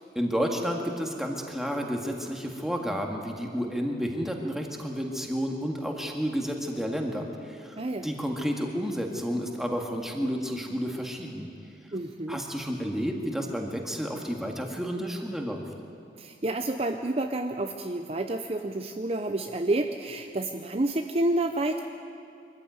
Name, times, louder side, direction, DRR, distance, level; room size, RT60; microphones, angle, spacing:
voice 1, 0.2-11.5 12.3-15.7, equal, ahead, 1 dB, 1.9 m, -31 dB
voice 2, 7.8-8.1 11.9-12.4 16.2-21.8, right 2 dB, 35° right, 5 dB, 0.7 m, -29 dB
24.0 x 14.5 x 9.5 m, 2.6 s
head